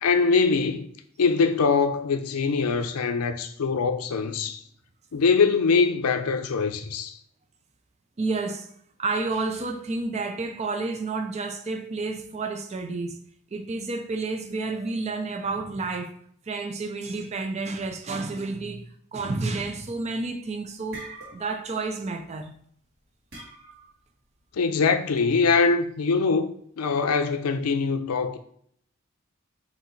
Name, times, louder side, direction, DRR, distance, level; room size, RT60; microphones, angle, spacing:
voice 1, 0.0-0.9 1.2-4.6 5.1-7.2 24.5-28.4, left 4 dB, 85° left, 0.5 m, -23 dB
voice 2, 8.2-8.7 9.0-13.2 13.5-16.1 16.5-22.5, right 3 dB, 30° right, 0.4 m, -30 dB
sound 1, 20.3-20.4 20.7-21.8 22.0-22.3 23.3-24.0, right 2 dB, 60° right, 1.5 m, -43 dB
4.4 x 2.8 x 3.9 m
head